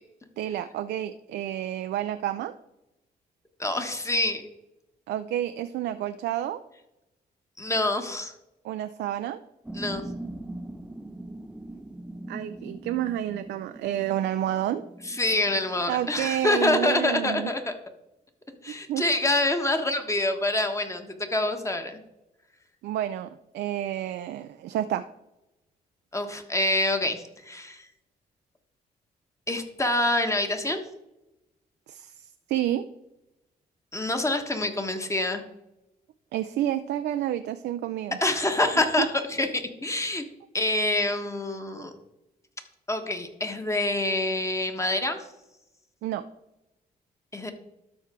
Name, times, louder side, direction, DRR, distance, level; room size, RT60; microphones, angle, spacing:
voice 1, 0.4-2.5 5.1-6.6 8.6-9.4 12.3-14.8 15.9-17.5 18.7-19.1 22.8-25.1 31.9-32.8 36.3-38.2 38.8-39.1 46.0-46.2, right 12 dB, 80° right, 10 dB, 0.4 m, -30 dB
voice 2, 3.6-4.4 7.6-8.3 9.7-10.0 15.0-17.7 18.6-22.0 26.1-27.8 29.5-30.8 33.9-35.4 38.2-40.2 40.5-41.9 42.9-45.2 47.3-47.5, left 2 dB, 15° left, 6 dB, 1.3 m, -26 dB
sound 1, 9.6-16.6, right 1 dB, 5° right, 0.5 m, -41 dB
13.0 x 4.4 x 3.7 m, 0.91 s
cardioid pair, 70°, 17 cm